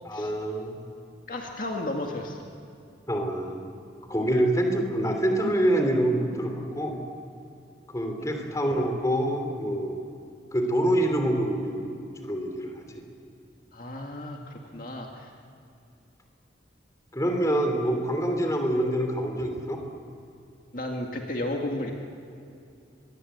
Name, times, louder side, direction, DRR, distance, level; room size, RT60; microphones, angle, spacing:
voice 1, 0.0-0.8 3.1-3.7 4.1-7.0 7.9-10.0 10.5-13.0 17.1-19.8, right 1 dB, 20° left, 4 dB, 3.1 m, -26 dB
voice 2, 1.3-2.5 8.2-8.3 13.7-15.3 20.7-21.9, left 1 dB, 50° left, 1 dB, 2.1 m, -33 dB
25.5 x 22.0 x 8.0 m, 2.6 s
head